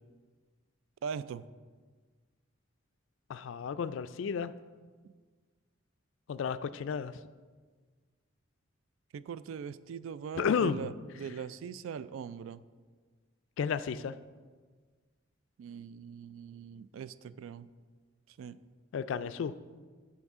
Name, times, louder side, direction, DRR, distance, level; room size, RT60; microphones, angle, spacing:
voice 1, 1.0-1.4 9.1-10.9 11.2-12.6 15.6-17.7 18.4-18.6, right 7 dB, 80° right, 15 dB, 0.3 m, -41 dB
voice 2, 3.3-4.5 6.3-7.1 10.4-10.9 13.6-14.1 18.9-19.5, left 6 dB, 70° left, 13 dB, 0.3 m, -32 dB
12.5 x 4.5 x 3.6 m, 1.5 s
head